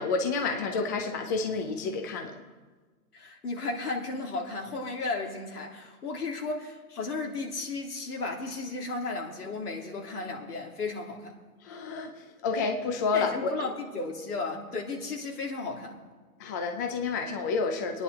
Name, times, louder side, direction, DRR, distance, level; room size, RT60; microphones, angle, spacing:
voice 1, 0.0-2.3 11.6-12.1 12.4-13.5 16.4-18.0, left 4 dB, 15° left, 4 dB, 0.3 m, -29 dB
voice 2, 3.1-11.3 13.1-16.0, left 3 dB, 85° left, 0 dB, 3.0 m, -34 dB
25.5 x 9.8 x 3.5 m, 1.3 s
hypercardioid pair, 135°, 45 cm